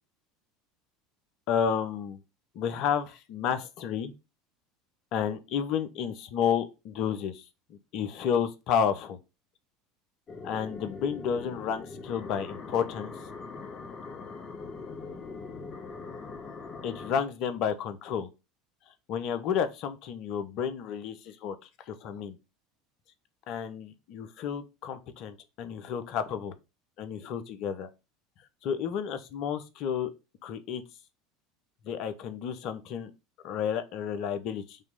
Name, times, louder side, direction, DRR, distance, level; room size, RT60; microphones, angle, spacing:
voice 1, 1.5-2.2 2.5-4.1 5.1-7.4 7.7-9.2 10.4-13.1 16.8-18.3 18.9-21.5 21.9-22.4 23.5-26.5 27.0-27.9 28.6-30.1 30.4-30.8 31.8-33.1 33.4-34.8, left 7 dB, 55° left, 1.0 m, -31 dB
sound 1, 10.3-17.2, left 4 dB, 35° left, 1.3 m, -41 dB
5.5 x 3.1 x 5.4 m
hypercardioid pair, 75°, 0 cm